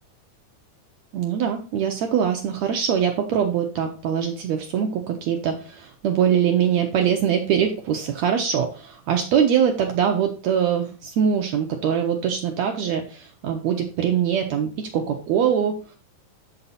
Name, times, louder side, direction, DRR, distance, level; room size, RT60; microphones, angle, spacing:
voice 1, 1.1-15.8, right 8 dB, 70° right, 3 dB, 1.8 m, -23 dB
7.1 x 5.7 x 4.0 m, 0.35 s
omnidirectional pair, 3.9 m